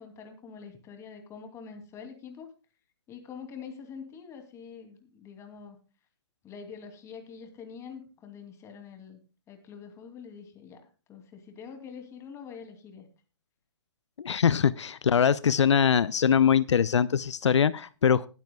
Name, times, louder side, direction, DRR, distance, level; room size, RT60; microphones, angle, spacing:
voice 1, 0.0-2.5 3.1-5.8 6.4-9.2 9.5-13.1, left 6 dB, 20° left, 5 dB, 2.6 m, -45 dB
voice 2, 14.2-18.3, left 7 dB, 85° left, 18 dB, 0.5 m, -23 dB
21.0 x 9.1 x 2.3 m, 0.34 s
hypercardioid pair, 135°, 15 cm